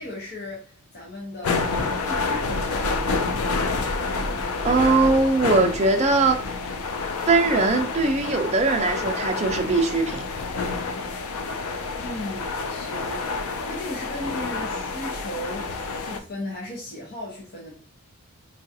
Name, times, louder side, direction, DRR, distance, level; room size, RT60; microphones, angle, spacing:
voice 1, 0.0-2.8 12.0-17.7, left 1 dB, 50° left, 0.8 m, -36 dB
sound 1, 1.4-16.2, left 3 dB, 90° left, 0.4 m, -28 dB
voice 2, 4.6-6.5 7.2-10.2, right 3 dB, 30° right, 0.4 m, -21 dB
4.6 x 2.4 x 2.7 m
head